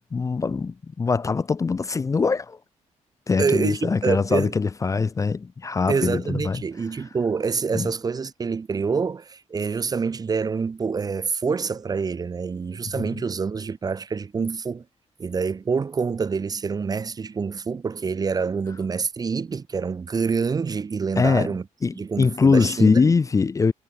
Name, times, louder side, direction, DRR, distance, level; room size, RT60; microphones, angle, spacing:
voice 1, 0.1-2.6 3.3-6.6 7.7-7.9 21.2-21.5 21.8-23.7, left 4 dB, 25° left, 0.7 m, -22 dB
voice 2, 3.4-4.5 5.9-14.8 15.2-21.6 22.0-23.1, right 5 dB, 30° right, 0.9 m, -26 dB
wide cardioid pair, 145°, 13 cm